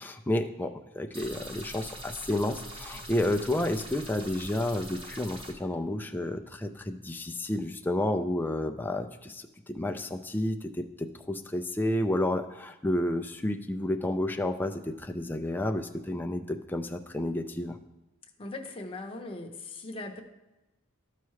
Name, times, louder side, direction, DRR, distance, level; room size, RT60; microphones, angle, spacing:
voice 1, 0.0-17.8, left 1 dB, 10° left, 5 dB, 0.3 m, -31 dB
sound 1, 1.1-5.5, right 1 dB, 25° right, 1.0 m, -43 dB
voice 2, 18.4-20.2, left 2 dB, 25° left, 2 dB, 0.7 m, -39 dB
13.0 x 4.6 x 3.2 m, 1.0 s
head